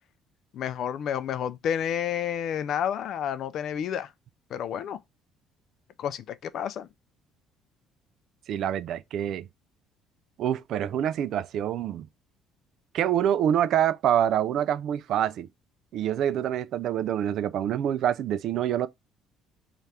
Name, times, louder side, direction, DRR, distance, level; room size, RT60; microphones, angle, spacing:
voice 1, 0.5-4.1 4.5-5.0 6.0-6.9, left 9 dB, 60° left, 0.3 m, -30 dB
voice 2, 8.5-9.5 10.4-12.1 12.9-15.5 15.9-18.9, right 10 dB, 60° right, 0.3 m, -26 dB
3.3 x 2.4 x 4.2 m
cardioid pair, 120°, 0 cm